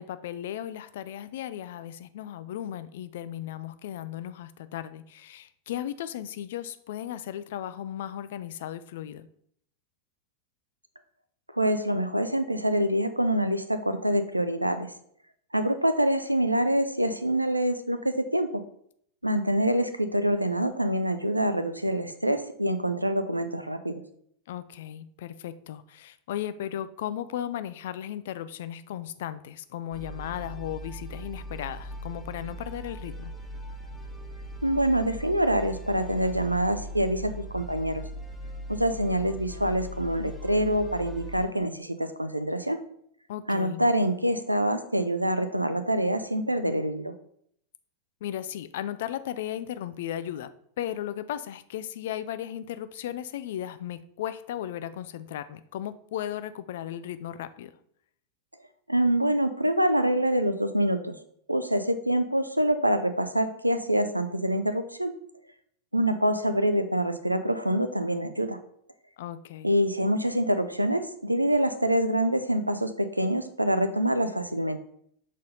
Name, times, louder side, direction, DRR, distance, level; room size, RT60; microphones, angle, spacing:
voice 1, 0.0-9.3 24.5-33.3 43.3-43.9 48.2-50.5 50.8-57.7 69.2-69.7, left 11 dB, 55° left, 14 dB, 0.4 m, -36 dB
voice 2, 11.6-14.9 15.5-18.6 19.2-24.0 34.6-38.0 38.7-42.8 43.5-47.1 58.9-61.1 61.5-65.1 65.9-68.6 69.6-74.8, right 1 dB, 85° right, 10 dB, 0.5 m, -26 dB
sound 1, 29.9-41.5, equal, ahead, 1.2 m, -40 dB
6.3 x 4.1 x 3.9 m, 0.67 s
figure-of-eight pair, 90°, 0 cm